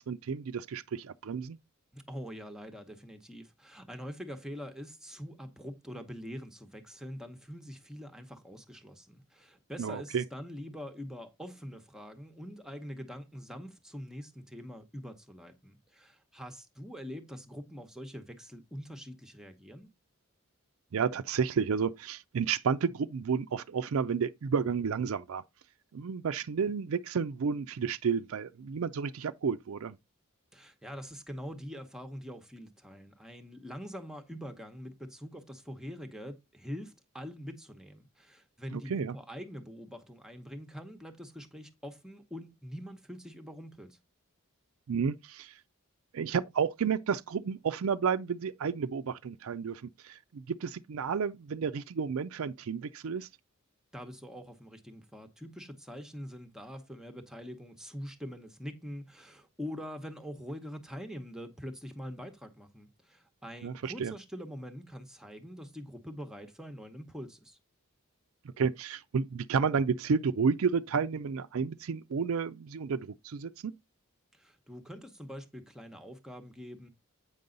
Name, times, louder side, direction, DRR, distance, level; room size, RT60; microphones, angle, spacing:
voice 1, 0.0-1.6 9.8-10.2 20.9-25.4 25.9-30.0 38.7-39.2 44.9-45.5 46.1-53.3 63.6-64.1 68.6-73.7, right 6 dB, 75° right, 0.4 m, -31 dB
voice 2, 1.9-19.9 30.5-44.0 49.7-49.8 53.9-67.6 74.3-76.9, equal, 5° right, 0.8 m, -44 dB
8.6 x 5.3 x 3.8 m
head